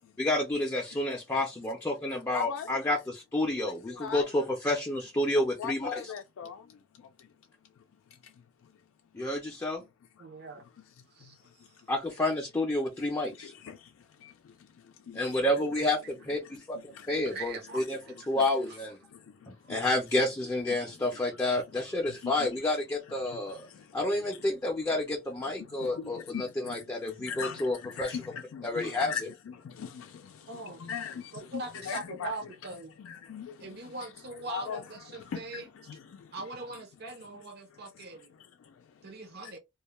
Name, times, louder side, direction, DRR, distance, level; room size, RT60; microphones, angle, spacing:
voice 1, 0.2-6.1 9.1-9.8 11.9-13.5 15.1-18.0 18.3-19.0 19.5-23.7 23.9-28.3 28.6-29.3, left 1 dB, 15° left, 0.5 m, -30 dB
voice 2, 2.3-2.7 3.9-4.3 5.6-6.7 7.2-7.3 11.2-11.3 13.4-13.9 14.2-14.3 15.1-15.3 16.9-17.1 18.3-18.5 19.1-19.8 20.7-20.8 22.2-22.3 23.3-23.4 23.7-24.0 25.4-26.8 27.2-29.2 29.6-32.3 33.0-33.8 34.5-34.8 35.1-35.6 35.9-36.3 39.4-39.5, left 7 dB, 90° left, 0.3 m, -40 dB
voice 3, 10.2-10.6 11.1-11.4 11.7-11.8 15.3-15.7 17.2-18.3 30.5-30.8 31.3-32.9 33.6-35.7 36.3-38.3 39.0-39.6, right 3 dB, 55° right, 0.7 m, -41 dB
2.3 x 2.1 x 3.0 m
head